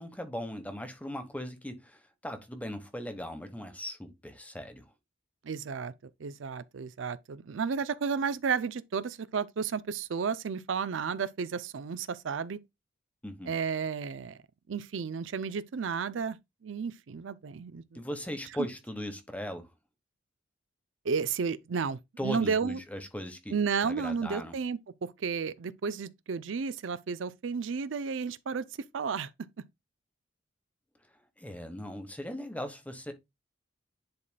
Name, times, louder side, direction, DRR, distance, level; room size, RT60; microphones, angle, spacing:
voice 1, 0.0-4.9 13.2-13.5 17.9-19.7 22.2-23.6 23.8-24.5 31.4-33.1, equal, 10° left, 1.0 m, -38 dB
voice 2, 5.4-5.9 6.2-12.6 13.5-14.4 14.7-16.4 16.6-18.0 21.0-22.8 23.5-28.7 28.9-29.3, right 5 dB, 70° right, 0.5 m, -32 dB
10.5 x 4.0 x 2.2 m
head